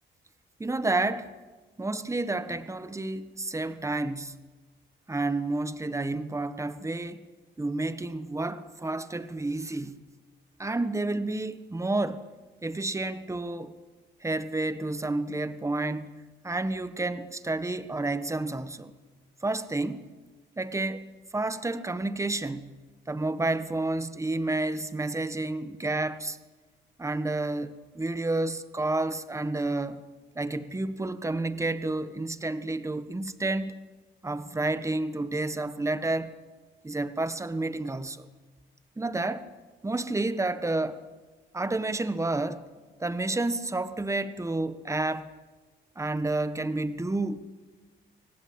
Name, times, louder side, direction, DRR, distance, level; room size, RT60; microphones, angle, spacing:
voice 1, 0.6-1.3 1.8-4.4 5.1-7.3 7.6-10.0 10.6-12.3 12.6-13.8 14.2-16.1 16.4-18.9 19.4-20.1 20.6-22.8 23.1-26.4 27.0-30.0 30.3-33.8 34.2-36.3 36.8-38.3 39.0-39.5 39.8-41.0 41.5-42.6 43.0-45.3 46.0-47.4, right 2 dB, 15° right, 1.4 m, -30 dB
25.0 x 18.5 x 8.9 m
cardioid pair, 90°, 20 cm